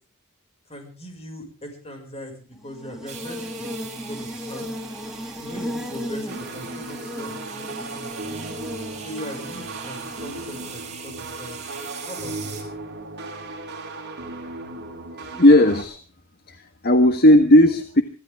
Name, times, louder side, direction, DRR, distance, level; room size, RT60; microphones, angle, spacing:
voice 1, 0.7-2.3 2.6-3.8 4.1-4.7 5.4-8.3 9.0-11.6 12.0-12.5, equal, 30° left, 3 dB, 6.0 m, -39 dB
Buzz, 2.6-10.7, equal, ahead, 2.8 m, -36 dB
sound 1, 3.1-12.6, right 7 dB, 35° right, 5.5 m, -41 dB
sound 2, 6.3-15.8, right 2 dB, 55° right, 4.9 m, -36 dB
voice 2, 15.3-16.0 16.5-18.0, left 1 dB, 50° left, 8 dB, 1.5 m, -15 dB
25.0 x 16.0 x 3.6 m, 0.38 s
head